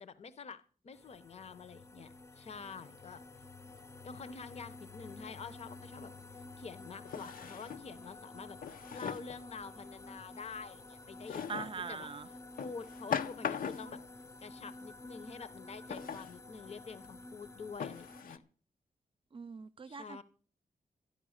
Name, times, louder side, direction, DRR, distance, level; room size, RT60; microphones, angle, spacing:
voice 1, 0.0-3.4 4.0-6.1 6.6-14.0 14.4-18.4 19.8-20.2, left 5 dB, 50° left, 0.8 m, -48 dB
sound 1, 0.9-18.2, left 2 dB, 20° left, 0.6 m, -51 dB
Drawer open or close, 5.7-5.8 7.0-7.9 8.6-9.4 11.3-11.8 12.6-14.0 15.9-16.4 17.0-17.1 17.8-18.4, left 7 dB, 90° left, 0.9 m, -39 dB
voice 2, 11.5-12.3 19.3-20.2, right 5 dB, 40° right, 0.5 m, -42 dB
12.5 x 11.5 x 6.5 m
wide cardioid pair, 175°, 14 cm